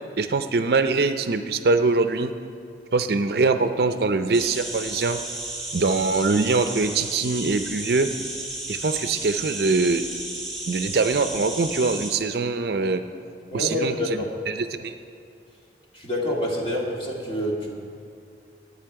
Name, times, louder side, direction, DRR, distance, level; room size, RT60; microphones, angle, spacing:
voice 1, 0.2-2.3 2.9-5.2 5.7-8.1 8.7-10.0 10.7-13.0 13.5-14.9, right 3 dB, 60° right, 9 dB, 0.5 m, -23 dB
sound 1, 4.3-12.1, right 2 dB, ahead, 1.6 m, -34 dB
voice 2, 13.5-14.3 15.9-17.8, left 1 dB, 30° left, -2 dB, 2.1 m, -27 dB
21.5 x 8.5 x 4.7 m, 2.5 s
head